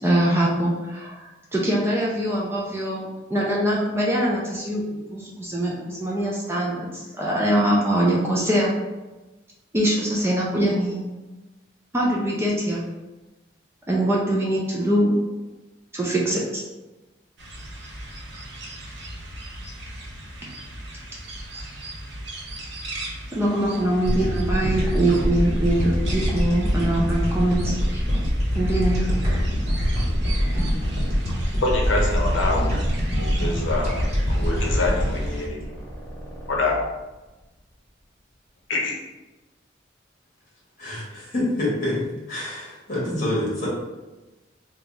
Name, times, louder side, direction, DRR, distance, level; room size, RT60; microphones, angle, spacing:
voice 1, 0.0-4.8 5.1-8.7 9.7-11.0 11.9-12.8 13.9-15.1 15.9-16.6 21.5-21.6 23.3-28.0 28.5-29.4 29.8-30.7 31.4-31.5, right 1 dB, 15° right, -4 dB, 0.5 m, -23 dB
sound 1, 17.4-35.5, right 1 dB, 60° right, 0.7 m, -38 dB
sound 2, 24.0-36.5, equal, 35° right, 1.1 m, -24 dB
sound 3, 30.4-30.6 30.9-31.1 32.2-32.9 33.6-34.0 34.3-36.8, equal, 10° left, 1.0 m, -37 dB
voice 2, 31.6-32.8 33.1-33.9 34.3-35.7 36.5-36.8 38.7-39.0, left 2 dB, 80° left, -1 dB, 0.7 m, -25 dB
voice 3, 40.8-43.7, left 1 dB, 40° left, -6 dB, 1.3 m, -27 dB
3.3 x 2.3 x 3.9 m, 1.1 s
head